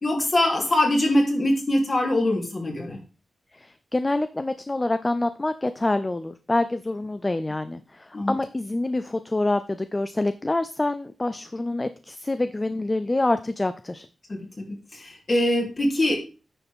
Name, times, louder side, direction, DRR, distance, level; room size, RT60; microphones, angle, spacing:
voice 1, 0.0-3.0 8.1-8.4 14.3-14.7 14.9-16.2, left 1 dB, 35° left, 0 dB, 3.2 m, -23 dB
voice 2, 3.5-14.1, left 2 dB, 20° left, 11 dB, 0.4 m, -26 dB
9.9 x 6.8 x 3.6 m, 0.34 s
wide cardioid pair, 125°, 0 cm